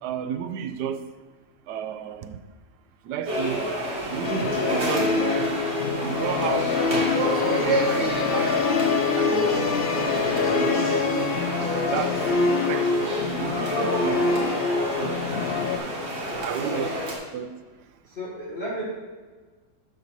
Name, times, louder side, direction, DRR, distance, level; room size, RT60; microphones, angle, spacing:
voice 1, 0.0-1.0 1.7-2.4 3.0-3.7 4.1-5.5 6.0-6.7 7.4-8.7 9.1-10.2 10.6-11.3 11.9-12.2 12.7-15.3 15.8-16.0 16.4-16.9 17.3-17.5, right 8 dB, 85° right, 10 dB, 1.2 m, -32 dB
sound 1, 3.3-17.2, right 1 dB, 40° right, 1.7 m, -29 dB
Musical instrument, 4.2-15.8, left 5 dB, 85° left, 0.5 m, -25 dB
voice 2, 16.1-17.0 18.1-18.9, equal, 35° left, -8 dB, 1.9 m, -35 dB
12.0 x 4.0 x 4.6 m, 1.4 s
omnidirectional pair, 1.7 m